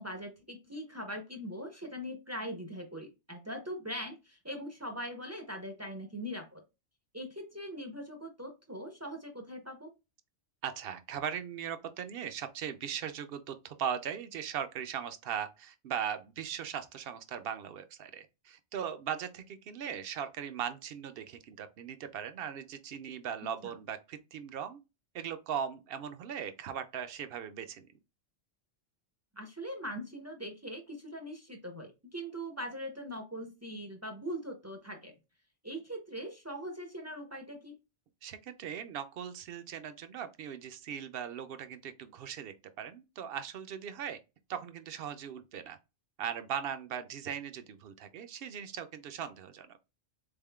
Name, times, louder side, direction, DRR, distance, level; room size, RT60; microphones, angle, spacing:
voice 1, 0.0-6.6 7.1-9.9 23.6-23.7 29.3-35.1 35.6-37.7, equal, 20° right, 0.4 m, -41 dB
voice 2, 10.6-24.8 25.1-27.9 38.2-44.2 44.5-45.8 46.2-49.8, right 8 dB, 65° right, 0.7 m, -39 dB
3.8 x 3.5 x 2.2 m
omnidirectional pair, 1.1 m